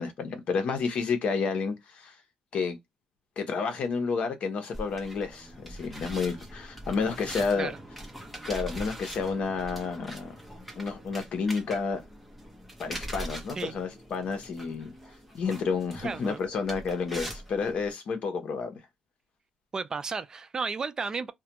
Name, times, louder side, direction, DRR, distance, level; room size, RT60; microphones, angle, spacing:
voice 1, 0.0-2.1 2.5-2.8 3.4-7.7 8.4-10.3 10.8-12.0 12.8-14.9 15.3-18.8, left 5 dB, 60° left, 0.8 m, -30 dB
sound 1, 4.7-17.9, right 1 dB, ahead, 0.8 m, -42 dB
voice 2, 16.0-16.4 19.7-21.3, right 4 dB, 30° right, 0.3 m, -33 dB
2.3 x 2.2 x 2.8 m
cardioid pair, 125°, 2 cm